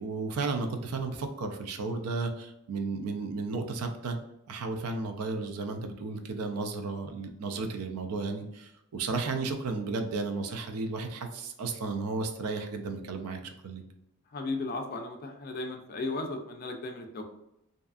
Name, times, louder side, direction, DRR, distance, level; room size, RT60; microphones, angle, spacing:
voice 1, 0.0-4.2 4.5-13.8, right 3 dB, 90° right, 6 dB, 0.4 m, -33 dB
voice 2, 14.3-17.2, left 2 dB, 45° left, 4 dB, 0.3 m, -35 dB
2.6 x 2.4 x 2.3 m, 0.85 s
head